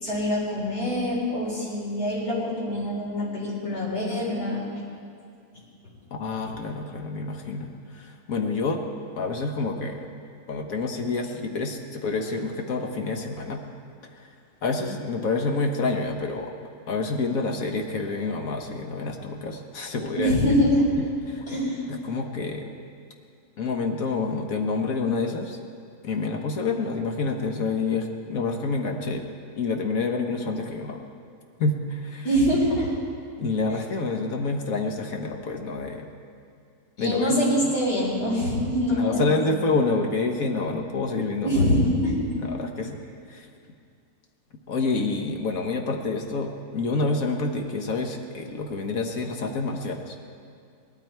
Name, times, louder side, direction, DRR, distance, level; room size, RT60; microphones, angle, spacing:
voice 1, 0.0-4.6 20.1-20.9 21.5-21.8 32.2-32.9 37.0-39.4 41.4-42.4, equal, 80° left, -6 dB, 4.8 m, -24 dB
voice 2, 6.1-8.8 9.1-10.1 10.5-13.6 14.2-14.3 14.6-16.5 16.9-20.4 21.3-21.4 21.9-22.7 23.6-25.6 26.0-29.2 29.5-31.0 31.6-32.2 33.4-36.1 37.0-37.4 39.0-41.6 42.4-43.0 43.3-43.5 44.7-50.2, left 3 dB, 60° left, 3 dB, 1.4 m, -28 dB
18.5 x 12.0 x 4.5 m, 2.3 s
omnidirectional pair, 1.7 m